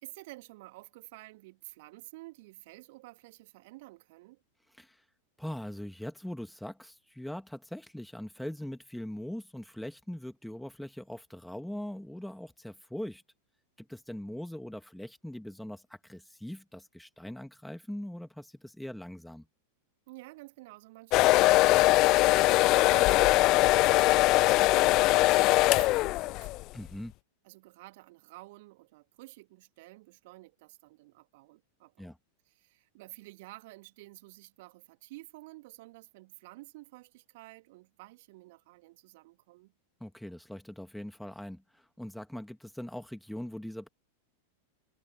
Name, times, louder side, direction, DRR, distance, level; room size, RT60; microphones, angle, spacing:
voice 1, 0.0-4.4 20.1-26.7 27.4-32.1 32.4-39.7, right 21 dB, 50° right, 3.3 m, -51 dB
voice 2, 5.4-13.2 13.8-19.4 26.7-27.1 32.0-32.2 40.0-43.9, left 1 dB, ahead, 2.8 m, -41 dB
sound 1, 21.1-26.6, left 19 dB, 40° left, 0.5 m, -22 dB
figure-of-eight pair, 90°, 0 cm